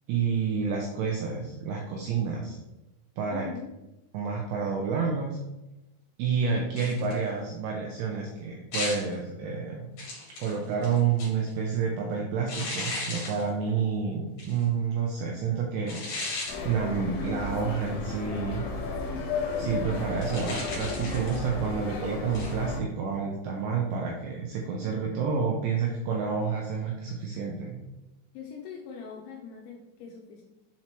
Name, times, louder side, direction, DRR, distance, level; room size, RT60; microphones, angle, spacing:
voice 1, 0.1-2.6 3.2-3.5 4.1-5.4 6.2-9.9 10.4-16.0 16.6-18.6 19.6-27.8, right 6 dB, 85° right, -1 dB, 2.5 m, -29 dB
voice 2, 3.3-3.7 28.3-30.4, left 6 dB, 85° left, 0 dB, 2.7 m, -42 dB
sound 1, 6.8-7.2 8.7-9.1 10.0-11.5 12.5-13.4 14.4-14.6 15.9-16.6 20.2-21.5 22.3-22.6, left 2 dB, 50° left, 2.7 m, -35 dB
sound 2, 16.5-22.8, left 4 dB, 70° left, 2.8 m, -33 dB
7.4 x 4.4 x 2.9 m, 0.96 s
omnidirectional pair, 5.8 m